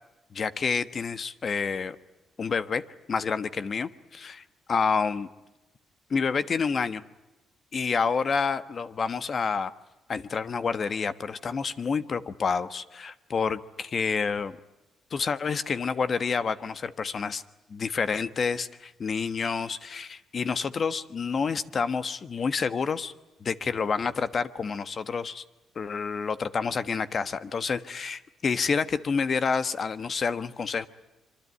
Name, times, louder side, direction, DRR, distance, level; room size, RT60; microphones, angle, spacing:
voice 1, 0.3-2.0 2.4-2.8 3.1-5.3 6.1-7.0 7.7-9.7 10.1-14.6 15.1-17.4 17.7-23.1 23.4-25.4 25.7-30.9, left 5 dB, 45° left, 13 dB, 1.3 m, -28 dB
25.5 x 24.0 x 9.7 m, 1.0 s
cardioid pair, 90°, 0 cm